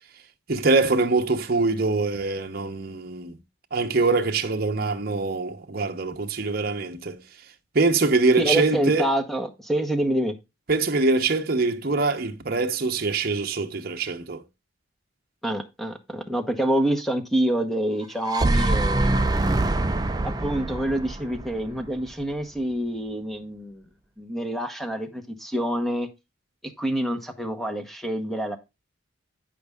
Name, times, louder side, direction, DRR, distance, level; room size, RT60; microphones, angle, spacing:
voice 1, 0.5-3.4 3.7-7.2 7.7-9.1 10.7-14.4, right 3 dB, 50° right, 0.9 m, -23 dB
voice 2, 8.4-10.3 15.4-19.1 20.2-23.8 24.2-26.1 26.8-28.6, right 1 dB, ahead, 1.0 m, -27 dB
sound 1, 18.0-22.2, right 2 dB, 20° right, 0.4 m, -24 dB
9.4 x 5.3 x 3.5 m
head